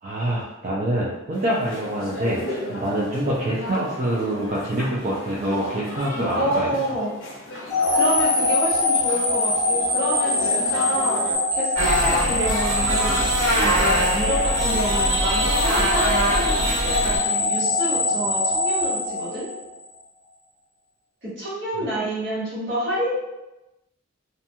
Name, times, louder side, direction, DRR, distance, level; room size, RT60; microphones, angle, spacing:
voice 1, 0.0-6.7, right 1 dB, 40° right, -6 dB, 0.4 m, -25 dB
sound 1, 1.3-11.3, left 1 dB, 65° left, 0.6 m, -35 dB
voice 2, 6.3-7.1 7.9-11.2 11.5-13.3 13.6-19.5 21.2-23.1, right 1 dB, 60° right, -9 dB, 1.3 m, -28 dB
sound 2, 7.7-19.9, left 2 dB, 15° left, 0.7 m, -23 dB
sound 3, 11.7-17.2, equal, 85° right, 1.3 m, -23 dB
2.5 x 2.2 x 2.8 m, 0.99 s
head